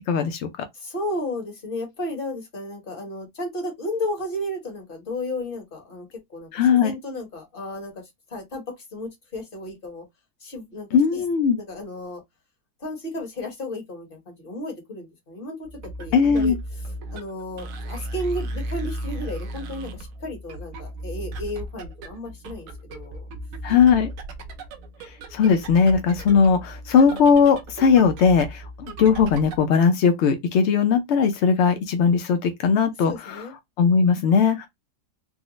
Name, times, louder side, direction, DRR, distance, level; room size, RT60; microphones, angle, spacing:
voice 1, 0.7-10.0 10.4-11.2 11.5-12.2 12.8-16.6 17.1-23.3 33.0-33.5, left 1 dB, 35° left, 1.3 m, -33 dB
voice 2, 6.5-6.9 10.9-11.6 16.1-16.6 23.6-24.1 25.3-33.4 33.8-34.7, left 6 dB, 80° left, 0.6 m, -19 dB
sound 1, 15.6-29.7, right 1 dB, 65° right, 0.9 m, -36 dB
3.8 x 2.0 x 3.0 m
omnidirectional pair, 1.8 m